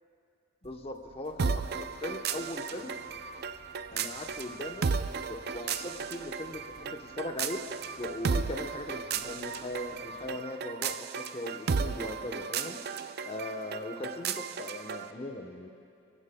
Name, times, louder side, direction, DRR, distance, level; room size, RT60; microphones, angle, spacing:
voice 1, 0.6-2.9 3.9-4.9 5.3-7.7 8.0-12.8 13.2-15.7, left 1 dB, 30° left, 3 dB, 0.9 m, -39 dB
sound 1, 0.6-10.4, equal, 35° right, 2.3 m, -59 dB
sound 2, 1.4-15.1, right 5 dB, 50° right, 0.4 m, -34 dB
28.5 x 14.5 x 2.2 m, 2.5 s
head